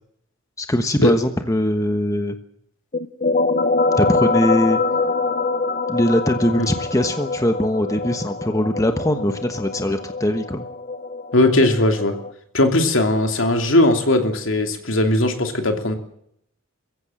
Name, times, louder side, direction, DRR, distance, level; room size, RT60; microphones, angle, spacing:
voice 1, 0.6-2.4 4.0-4.8 5.9-10.7, left 1 dB, 15° left, 7 dB, 1.2 m, -21 dB
sound 1, 2.9-12.3, left 3 dB, 40° left, 1.0 m, -24 dB
voice 2, 11.3-12.2 12.5-16.0, left 1 dB, 65° left, 5 dB, 2.9 m, -18 dB
23.0 x 15.0 x 7.7 m, 0.72 s
head